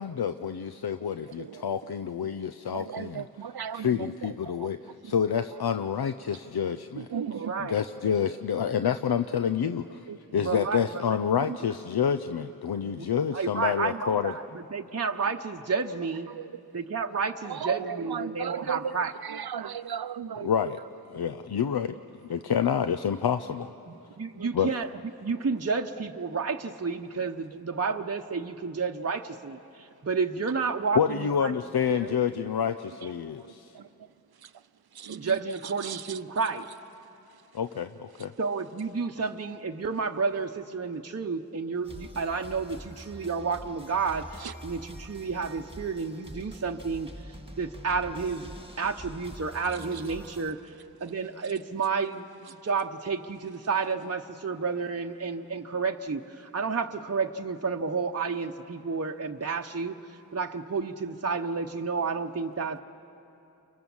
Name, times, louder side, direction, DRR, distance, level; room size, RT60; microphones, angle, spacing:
voice 1, 0.0-14.3 20.4-20.8 21.1-21.9 22.3-23.7 24.5-24.7 31.0-33.7 37.5-38.3, left 8 dB, 80° left, 10 dB, 0.6 m, -28 dB
voice 2, 2.7-3.9 7.0-7.5 10.1-10.2 16.4-16.5 17.5-18.8 19.3-20.5 24.4-24.5 33.8-33.9 35.0-35.2 35.8-36.0, right 8 dB, 75° right, 14 dB, 0.6 m, -35 dB
voice 3, 7.3-7.8 10.4-11.2 12.8-16.3 16.7-19.1 23.9-24.9 25.2-31.6 31.9-32.2 35.1-36.7 38.4-47.1 47.6-50.6 51.0-60.0 60.3-62.8, right 5 dB, 40° right, 4 dB, 0.9 m, -31 dB
sound 1, 41.8-50.5, right 1 dB, 15° right, 1.8 m, -45 dB
29.5 x 24.5 x 7.2 m, 2.8 s
wide cardioid pair, 45°, 37 cm